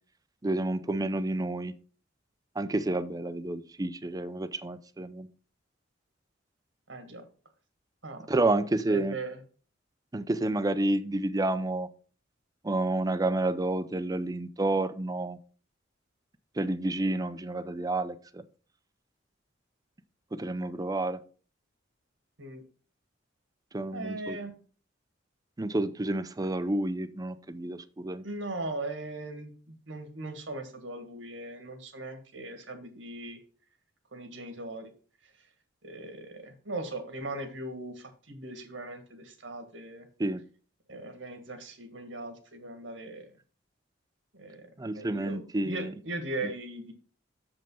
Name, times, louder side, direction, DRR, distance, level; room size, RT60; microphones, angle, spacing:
voice 1, 0.4-1.7 2.6-5.3 8.3-9.2 10.1-11.9 12.6-15.4 16.6-18.4 20.3-21.2 23.7-24.4 25.6-28.2 40.2-40.4 44.8-45.9, right 2 dB, 20° right, 13 dB, 0.5 m, -30 dB
voice 2, 6.9-7.2 8.0-8.3 8.9-9.4 22.4-22.6 23.9-24.5 28.2-33.4 34.1-34.9 35.2-35.5 35.8-40.1 40.9-43.2 44.3-44.7 44.9-46.9, right 2 dB, 75° right, 7 dB, 1.7 m, -39 dB
6.8 x 5.3 x 5.5 m, 0.39 s
head